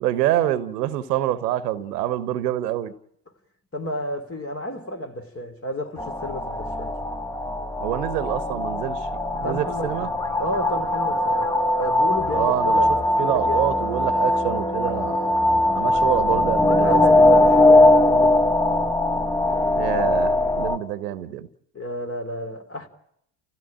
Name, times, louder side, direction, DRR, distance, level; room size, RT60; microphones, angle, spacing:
voice 1, 0.0-2.9 7.8-9.1 9.4-10.1 12.3-12.8 13.2-15.3 15.7-17.0 19.7-21.5, right 13 dB, 85° right, 1.2 m, -26 dB
voice 2, 3.7-6.9 9.3-9.9 10.4-13.7 16.3-18.5 21.7-22.9, left 1 dB, 30° left, 3.9 m, -31 dB
sound 1, 6.0-20.8, left 1 dB, 10° left, 1.7 m, -20 dB
30.0 x 16.5 x 8.9 m
hypercardioid pair, 60°, 47 cm